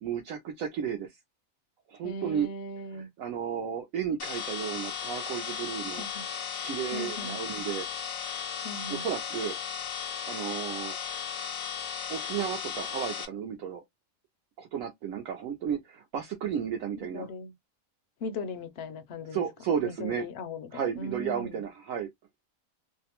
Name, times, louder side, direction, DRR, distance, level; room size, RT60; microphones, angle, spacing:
voice 1, 0.0-1.1 1.9-2.5 2.9-6.1 6.6-7.9 8.9-9.6 10.3-11.0 12.1-13.8 14.6-17.3 19.3-20.3 20.7-22.1, right 8 dB, 75° right, 1.0 m, -33 dB
voice 2, 2.0-3.1 6.0-6.2 6.9-7.4 8.6-9.1 17.1-17.5 18.2-19.4 19.8-21.6, left 3 dB, 65° left, 0.6 m, -38 dB
sound 1, 4.2-13.2, left 8 dB, 85° left, 1.1 m, -36 dB
2.7 x 2.0 x 2.8 m
omnidirectional pair, 1.4 m